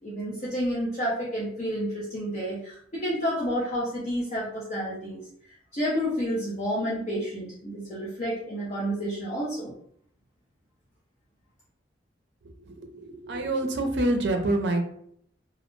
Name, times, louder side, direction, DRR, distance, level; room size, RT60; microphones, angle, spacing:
voice 1, 0.0-5.2 5.7-9.7, equal, 40° left, -7 dB, 0.5 m, -30 dB
voice 2, 12.6-14.8, right 2 dB, 65° right, 4 dB, 0.5 m, -26 dB
2.3 x 2.0 x 3.1 m, 0.67 s
head